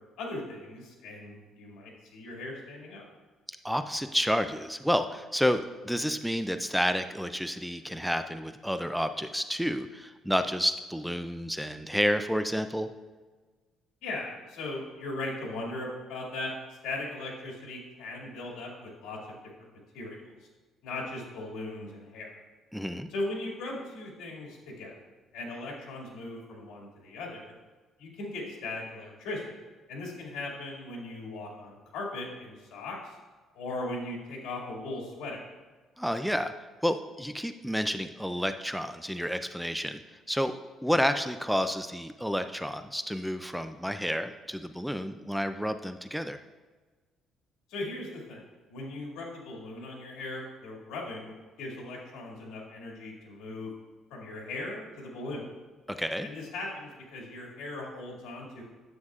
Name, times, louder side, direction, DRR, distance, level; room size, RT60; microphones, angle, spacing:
voice 1, 0.2-3.0 14.0-16.5 16.8-19.7 19.9-20.3 20.8-22.4 23.1-24.9 25.3-27.5 28.0-29.4 29.9-33.1 33.5-35.5 47.7-48.4 48.7-53.7 54.1-55.5 56.2-58.6, left 2 dB, 85° left, -2 dB, 2.2 m, -38 dB
voice 2, 3.6-12.9 22.7-23.1 36.0-36.5 36.8-40.0 40.3-46.4 56.0-56.3, equal, ahead, 9 dB, 0.3 m, -30 dB
9.5 x 7.9 x 2.4 m, 1.3 s
cardioid pair, 130°, 0 cm